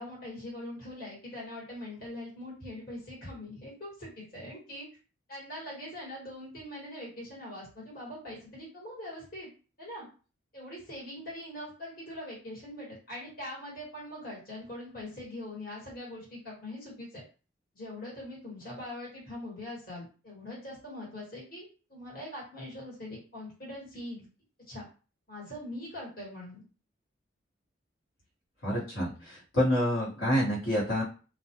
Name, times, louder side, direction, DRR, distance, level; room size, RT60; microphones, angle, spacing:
voice 1, 0.0-4.9 5.3-9.5 9.8-10.1 10.5-17.2 17.7-24.2 24.7-24.9 25.3-26.6, left 1 dB, 45° left, -6 dB, 1.3 m, -42 dB
voice 2, 28.6-31.0, equal, 80° left, -8 dB, 1.1 m, -28 dB
2.3 x 2.1 x 2.8 m, 0.36 s
head